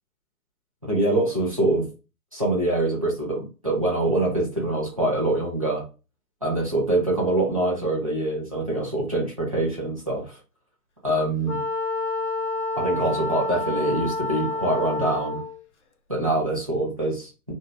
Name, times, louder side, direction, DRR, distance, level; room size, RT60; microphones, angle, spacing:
voice 1, 0.8-1.9 2.3-5.8 6.4-10.4 11.0-11.6 12.7-15.4 16.1-17.5, right 2 dB, 20° right, -4 dB, 0.8 m, -24 dB
Wind instrument woodwind instrument, 11.4-15.6, left 2 dB, 50° left, 0.5 m, -29 dB
3.3 x 2.7 x 3.7 m, 0.32 s
hypercardioid pair, 175°, 48 cm